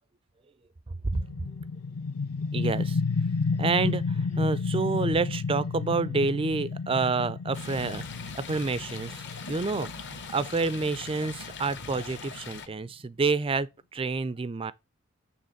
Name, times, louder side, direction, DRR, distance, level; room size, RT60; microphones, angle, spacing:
sound 1, 1.1-12.6, left 4 dB, 75° left, 0.7 m, -32 dB
voice 1, 2.5-3.0 3.6-14.7, right 4 dB, 25° right, 0.4 m, -29 dB
Stream, 7.5-12.7, left 4 dB, 50° left, 1.1 m, -41 dB
9.0 x 3.4 x 6.5 m
head